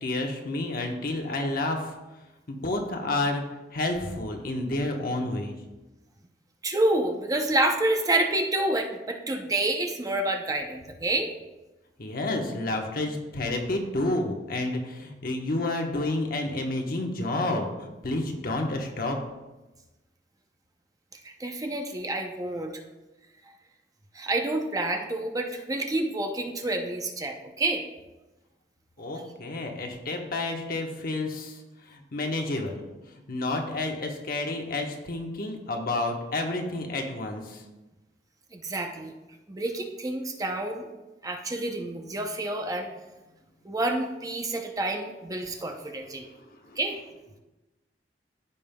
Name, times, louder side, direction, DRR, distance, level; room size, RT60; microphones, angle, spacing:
voice 1, 0.0-2.0 2.5-3.4 3.7-5.6 12.0-19.2 29.0-32.8 33.3-37.6 46.6-46.8, left 2 dB, 55° left, 2 dB, 1.1 m, -30 dB
voice 2, 6.6-11.3 21.1-22.8 24.1-27.9 38.5-39.1 39.5-40.9 41.2-42.9 43.6-46.3 46.8-47.0, right 2 dB, 20° right, 3 dB, 0.6 m, -28 dB
14.0 x 5.4 x 2.2 m, 1.1 s
head